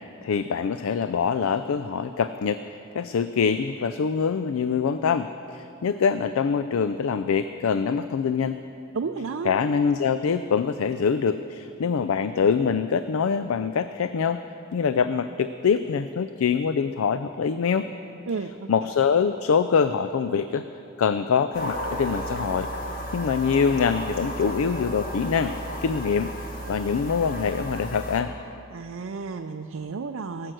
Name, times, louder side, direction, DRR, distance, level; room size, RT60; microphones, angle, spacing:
voice 1, 0.0-2.6 2.9-8.6 9.4-14.4 14.7-17.9 18.7-20.6 21.0-22.7 23.1-25.5 25.8-26.3 26.7-28.3, left 6 dB, 70° left, 11 dB, 0.4 m, -24 dB
voice 2, 8.9-9.6 18.3-18.7 28.7-30.5, right 4 dB, 65° right, 6 dB, 0.5 m, -32 dB
sound 1, 21.5-28.2, equal, 45° left, 1.5 m, -33 dB
18.5 x 7.8 x 6.2 m, 2.7 s
head